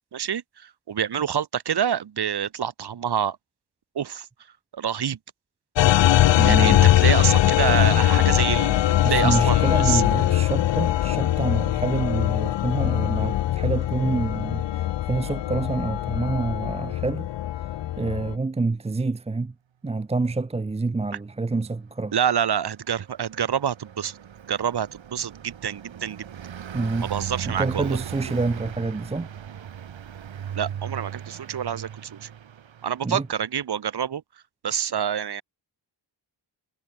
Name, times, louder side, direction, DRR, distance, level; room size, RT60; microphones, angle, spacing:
voice 1, 0.1-3.4 3.9-4.3 4.7-5.2 6.4-10.0 22.1-24.1 24.5-26.3 27.1-28.0 30.5-32.3 32.8-34.2 34.6-35.4, right 8 dB, 55° right, 1.0 m, -27 dB
sound 1, 5.8-18.3, left 13 dB, 70° left, 0.5 m, -21 dB
voice 2, 6.4-6.9 9.0-17.3 17.6-17.7 18.0-19.5 19.8-22.1 26.7-27.1 27.5-29.3 33.0-33.3, right 3 dB, 15° right, 0.4 m, -27 dB
Car passing by, 22.3-33.3, right 9 dB, 75° right, 1.5 m, -38 dB
wide cardioid pair, 150°, 46 cm